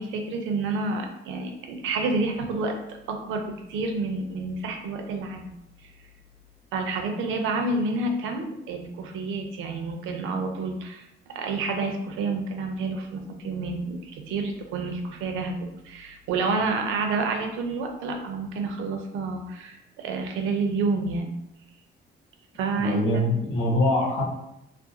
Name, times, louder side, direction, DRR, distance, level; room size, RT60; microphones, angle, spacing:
voice 1, 0.0-2.8 3.1-3.4 3.7-5.5 6.7-21.3 22.5-23.2, right 3 dB, 85° right, 4 dB, 0.5 m, -29 dB
voice 2, 22.8-24.2, left 1 dB, 85° left, -5 dB, 1.0 m, -24 dB
2.4 x 2.2 x 2.7 m, 0.81 s
cardioid pair, 90°, 20 cm